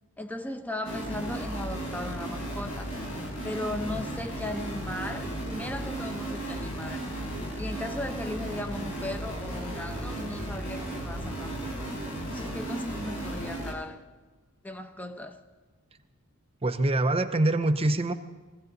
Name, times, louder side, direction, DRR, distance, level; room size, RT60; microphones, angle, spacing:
voice 1, 0.2-2.9 3.4-7.1 7.6-11.9 12.3-14.0 14.6-15.4, left 1 dB, 5° left, 0.9 m, -37 dB
sound 1, 0.8-13.7, right 1 dB, 75° left, 4.2 m, -35 dB
voice 2, 16.6-18.1, right 2 dB, 25° right, 0.7 m, -24 dB
22.5 x 16.0 x 4.0 m
head